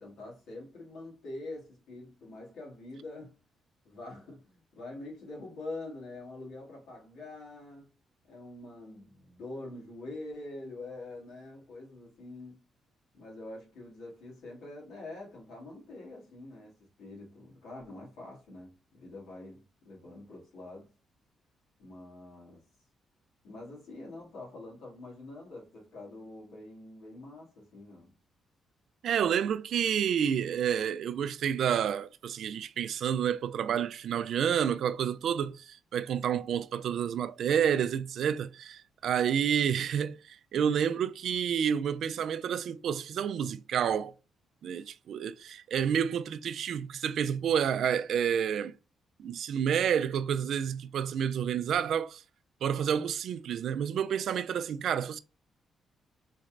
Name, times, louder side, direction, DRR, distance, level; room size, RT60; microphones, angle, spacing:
voice 1, 0.0-3.4 3.8-8.0 8.3-12.7 13.1-20.9 21.8-22.6 23.4-28.1, left 2 dB, 80° left, 2.2 m, -45 dB
voice 2, 29.0-44.1 44.6-48.7 49.2-52.2 52.6-55.2, right 8 dB, 60° right, 0.3 m, -29 dB
4.0 x 3.2 x 2.4 m
cardioid pair, 165°, 0 cm